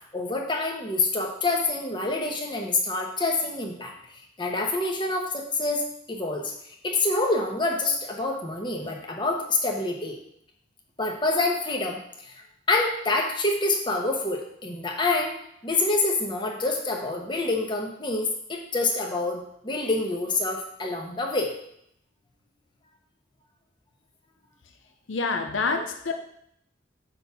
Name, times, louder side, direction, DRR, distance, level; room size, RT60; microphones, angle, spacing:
voice 1, 0.1-3.9 4.4-6.5 6.8-10.1 11.0-12.4 12.7-15.4 15.6-21.5 25.8-25.9, left 2 dB, 25° left, 1 dB, 1.2 m, -27 dB
voice 2, 25.1-26.1, left 4 dB, 80° left, 6 dB, 0.7 m, -27 dB
8.9 x 3.6 x 6.0 m, 0.72 s
head